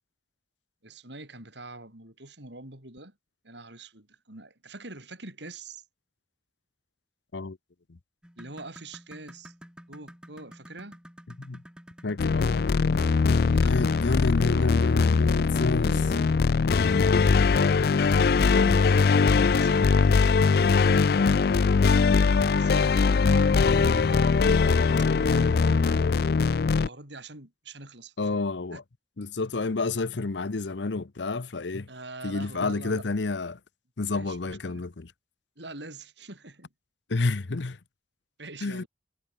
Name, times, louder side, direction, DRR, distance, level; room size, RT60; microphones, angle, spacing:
voice 1, 0.8-3.1 3.4-5.8 8.4-9.5 9.9-11.0 13.5-15.0 15.8-16.4 17.5-21.7 22.6-24.4 25.2-26.5 26.8-28.8 31.9-33.0 34.1-34.8 35.6-36.7 38.4-38.9, right 2 dB, 75° right, 7.8 m, -45 dB
sound 1, 8.2-16.7 18.0-18.2 18.7-18.8 19.4-19.5, equal, 5° right, 5.6 m, -50 dB
voice 2, 12.0-12.7 13.6-15.9 22.4-22.7 28.2-28.8 29.2-31.9 32.2-33.6 34.0-35.1 37.1-37.8 38.6-38.8, left 3 dB, 75° left, 0.8 m, -30 dB
sound 2, 12.2-26.9, left 5 dB, 55° left, 0.4 m, -21 dB
head